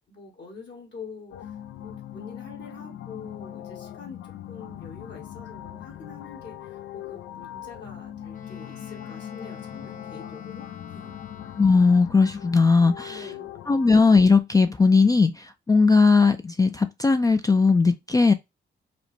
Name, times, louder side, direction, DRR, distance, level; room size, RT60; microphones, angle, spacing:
voice 1, 0.1-1.5 1.8-4.2 4.5-11.2 13.1-13.5, left 4 dB, 65° left, 1.7 m, -45 dB
sound 1, 1.3-13.9, left 11 dB, 85° left, 0.4 m, -40 dB
Wind instrument woodwind instrument, 8.3-12.2, left 7 dB, 40° left, 0.8 m, -45 dB
voice 2, 11.6-13.3 13.7-18.3, left 4 dB, 20° left, 0.3 m, -18 dB
5.0 x 2.1 x 3.2 m
cardioid pair, 85°, 20 cm